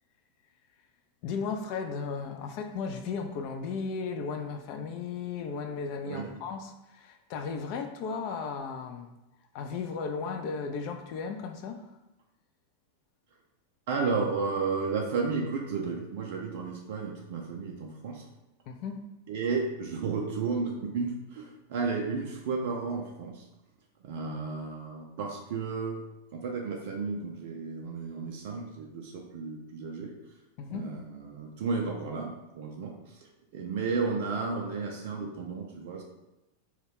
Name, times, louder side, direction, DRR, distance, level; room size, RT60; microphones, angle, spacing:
voice 1, 1.2-9.1 9.5-11.9 18.7-19.0 30.6-30.9, left 5 dB, 45° left, 6 dB, 0.3 m, -35 dB
voice 2, 6.1-6.4 13.9-18.2 19.3-23.5 24.0-26.0 26.3-30.1 30.7-33.2 33.5-36.0, right 4 dB, 50° right, 0 dB, 0.3 m, -33 dB
2.2 x 2.1 x 3.2 m, 0.98 s
figure-of-eight pair, 90°, 0 cm